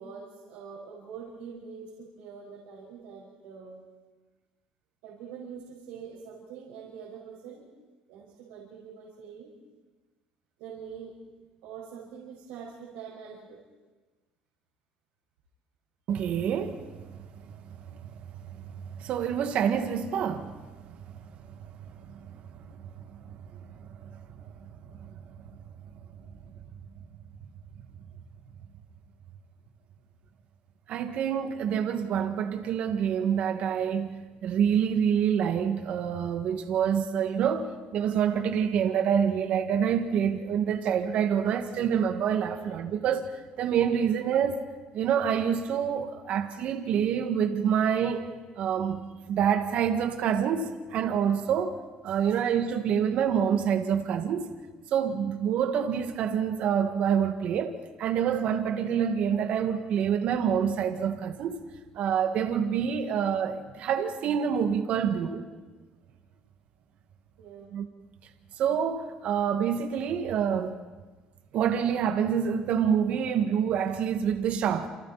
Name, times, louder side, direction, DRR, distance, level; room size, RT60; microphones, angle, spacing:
voice 1, 0.0-3.8 5.0-7.7 8.1-9.5 10.6-11.1 11.6-13.6 23.2-23.4 52.1-52.2 66.1-66.2 67.4-67.7, right 6 dB, 85° right, 5.5 m, -44 dB
voice 2, 16.1-17.2 17.5-17.6 18.0-18.1 19.0-20.5 20.9-21.0 22.1-22.3 23.0-23.6 24.0-24.1 30.9-44.6 44.9-48.3 48.6-51.8 52.0-54.5 54.9-61.6 62.0-65.5 67.7-67.8 68.6-70.8 71.5-74.9, right 8 dB, 65° right, 2.1 m, -27 dB
28.5 x 28.5 x 4.3 m
supercardioid pair, 90°, 2 cm